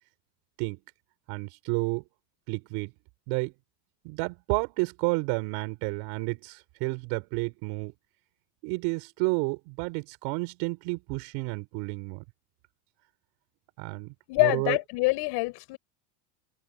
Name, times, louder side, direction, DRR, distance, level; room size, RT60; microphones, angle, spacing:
voice 1, 1.3-2.1 2.5-2.9 3.3-3.5 4.0-7.9 8.6-12.2 13.8-14.8, right 27 dB, 60° right, 6.0 m, -31 dB
voice 2, 14.3-15.8, left 26 dB, 55° left, 7.1 m, -25 dB
open air
cardioid pair, 170°, 48 cm